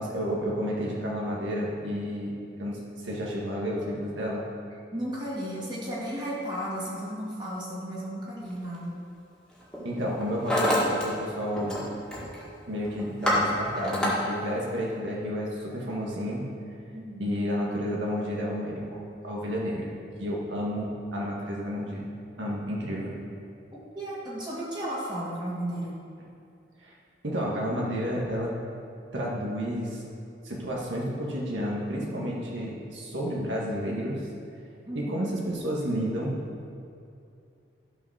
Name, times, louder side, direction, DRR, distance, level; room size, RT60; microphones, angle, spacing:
voice 1, 0.0-4.4 9.8-11.8 12.7-16.5 17.2-19.9 20.2-22.1 22.4-23.1 26.8-26.9 27.2-28.5 29.1-30.0 30.4-34.3 34.9-36.4, equal, 85° right, -4 dB, 1.7 m, -31 dB
voice 2, 4.9-9.0 16.9-17.4 23.7-25.9 34.9-35.3, right 1 dB, 25° right, -7 dB, 2.1 m, -34 dB
Hammer, 8.5-8.8 9.5-9.8 10.1-11.0 11.3-11.8 12.1-12.4 12.8-14.1, left 1 dB, 5° left, 1.9 m, -27 dB
12.0 x 5.2 x 6.3 m, 2.5 s
head